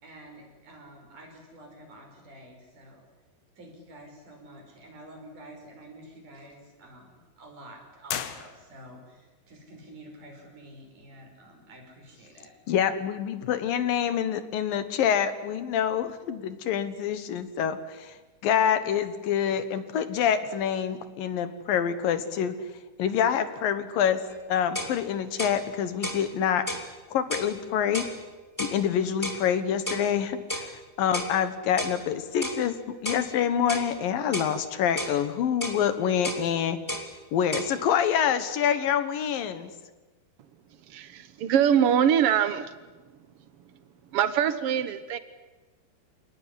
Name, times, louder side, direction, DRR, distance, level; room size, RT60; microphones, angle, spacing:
voice 1, 0.0-3.1 3.6-12.5, right 1 dB, 55° right, 2 dB, 7.0 m, -49 dB
sound 1, 8.1-9.1, left 10 dB, 90° left, 3.3 m, -35 dB
voice 2, 12.7-18.2 18.4-22.7 23.0-24.2 24.5-26.7 27.1-28.0 28.6-32.8 33.0-36.8 37.3-39.7, left 8 dB, 70° left, 11 dB, 3.1 m, -26 dB
sound 2, 24.3-24.4 24.7-25.0 25.4-25.6 26.0-26.2 26.7-26.9 27.3-27.5 27.9-28.2 28.6-28.8 29.2-29.4 29.9-30.1 30.5-30.7 31.1-31.3 31.8-32.0 32.4-32.6 33.0-33.3 33.7-33.9 34.3-34.5 35.0-35.2 35.6-35.8 36.2-36.4 36.9-37.1 37.5-37.7, left 1 dB, 5° left, 2.3 m, -33 dB
voice 3, 40.9-42.7 44.1-45.2, right 9 dB, 85° right, 12 dB, 1.2 m, -23 dB
28.0 x 19.0 x 10.0 m, 1.2 s
omnidirectional pair, 4.2 m